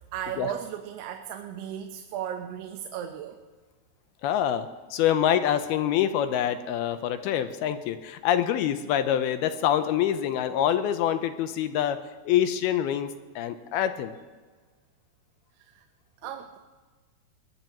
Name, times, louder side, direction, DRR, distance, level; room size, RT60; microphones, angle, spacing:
voice 1, 0.1-3.4 15.6-15.9 16.2-16.6, right 9 dB, 85° right, 5 dB, 3.0 m, -36 dB
voice 2, 4.2-13.1 13.4-14.1, left 10 dB, 80° left, 9 dB, 2.6 m, -26 dB
22.5 x 20.5 x 3.0 m, 1.4 s
omnidirectional pair, 4.6 m